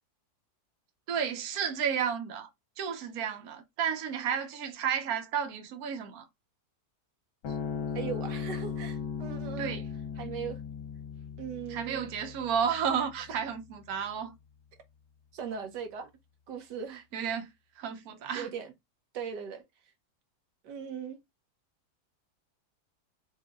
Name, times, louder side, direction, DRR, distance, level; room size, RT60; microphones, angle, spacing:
voice 1, 1.1-2.5 2.8-6.3 9.6-9.8 11.7-14.3 16.9-17.5 17.8-18.5, right 7 dB, 65° right, 1.3 m, -32 dB
sound 1, 7.4-14.1, left 6 dB, 85° left, 1.7 m, -38 dB
voice 2, 7.9-9.8 10.2-10.6 11.4-12.1 15.3-16.1 16.5-17.0 18.3-18.7 19.1-19.6 20.6-21.2, right 7 dB, 90° right, 1.6 m, -38 dB
4.6 x 2.7 x 3.7 m
omnidirectional pair, 1.8 m